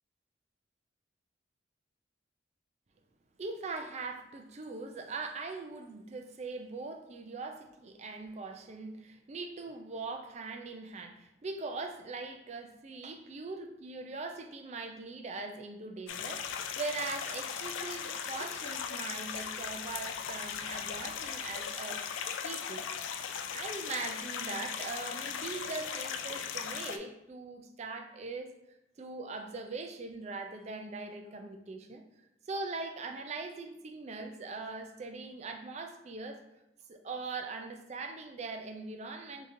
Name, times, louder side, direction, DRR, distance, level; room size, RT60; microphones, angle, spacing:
voice 1, 3.4-22.0 22.4-22.9 23.5-28.5 29.0-32.0 32.5-36.4 36.9-39.5, right 3 dB, 35° right, 5 dB, 0.4 m, -41 dB
sound 1, 16.1-27.0, left 7 dB, 80° left, 0.3 m, -38 dB
4.9 x 2.8 x 2.6 m, 0.85 s
head